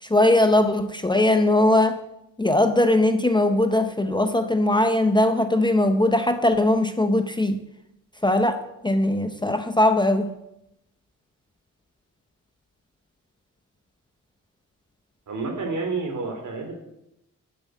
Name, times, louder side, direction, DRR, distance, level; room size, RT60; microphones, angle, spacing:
voice 1, 0.0-2.0 2.4-7.6 8.2-10.3, left 1 dB, 15° left, 7 dB, 0.7 m, -20 dB
voice 2, 15.3-16.7, right 3 dB, 65° right, 3 dB, 3.2 m, -29 dB
9.9 x 7.8 x 9.2 m, 0.85 s
wide cardioid pair, 180°, 33 cm